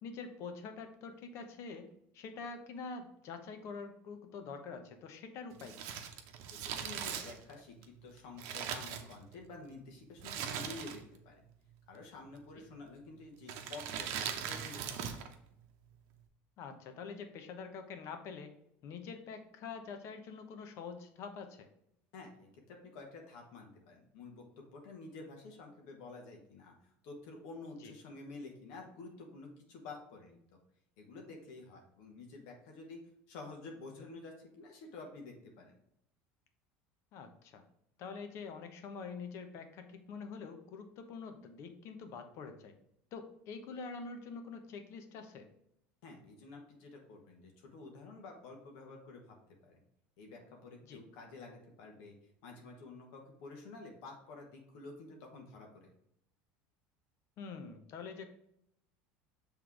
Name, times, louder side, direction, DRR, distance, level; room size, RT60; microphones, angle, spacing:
voice 1, 0.0-1.9 2.1-5.8 16.6-18.5 18.8-21.7 27.8-27.9 37.1-37.6 38.0-42.7 43.1-45.5 50.9-51.0 57.4-58.3, left 5 dB, 55° left, 7 dB, 1.1 m, -45 dB
Crumpling crinkling, 5.5-9.5 10.2-11.2 11.5-11.6 12.4-12.8 13.4-15.3 15.6-15.7, right 8 dB, 65° right, 0.9 m, -40 dB
voice 2, 6.5-11.4 11.9-15.3 22.1-26.7 27.0-30.4 31.0-33.0 33.3-35.7 46.0-49.4 49.6-49.8 50.2-52.2 52.4-55.9, left 3 dB, 75° left, 1 dB, 1.4 m, -50 dB
6.0 x 3.5 x 4.8 m, 0.76 s
supercardioid pair, 115°, 6 cm